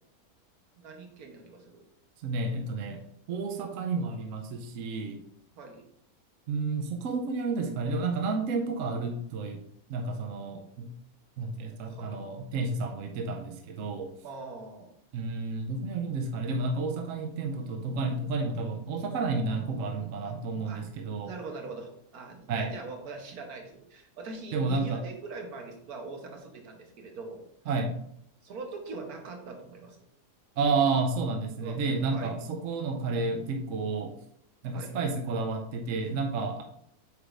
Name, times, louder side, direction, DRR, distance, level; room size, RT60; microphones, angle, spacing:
voice 1, 0.8-1.8 5.5-5.9 11.9-12.2 14.2-14.9 20.2-20.3 20.6-20.8 21.2-27.5 28.4-30.0 31.6-31.8 32.1-32.4 34.7-35.0 36.5-36.6, right 3 dB, 85° right, 3 dB, 1.5 m, -42 dB
voice 2, 2.2-5.2 6.5-9.6 9.9-10.9 11.4-14.1 15.1-21.3 22.5-22.7 24.5-25.0 27.7-28.0 30.6-34.1 34.6-36.6, right 3 dB, 65° right, 4 dB, 1.0 m, -31 dB
8.1 x 5.0 x 2.5 m, 0.72 s
omnidirectional pair, 1.5 m